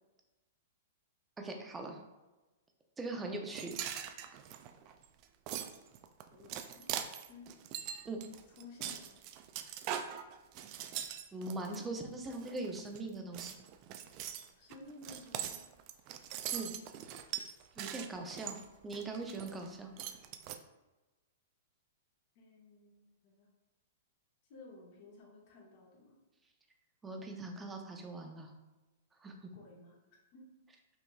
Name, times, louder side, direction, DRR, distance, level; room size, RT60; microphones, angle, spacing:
voice 1, 1.4-2.0 3.0-3.8 8.1-8.2 11.3-13.5 16.5-16.7 17.8-18.6 18.8-19.9 27.0-28.5 29.2-29.5, right 2 dB, 15° right, 3 dB, 0.7 m, -41 dB
sound 1, 3.5-11.8 12.2-13.0 13.3-19.7 20.0-20.6, right 10 dB, 40° right, 0.3 m, -42 dB
voice 2, 6.3-6.9 7.3-7.5 8.6-9.1 14.4-15.6 22.3-23.5 24.5-26.2 29.5-30.0 30.3-30.5, left 2 dB, 50° left, -2 dB, 1.3 m, -54 dB
5.5 x 2.9 x 2.3 m, 1.1 s
hypercardioid pair, 120°, 0 cm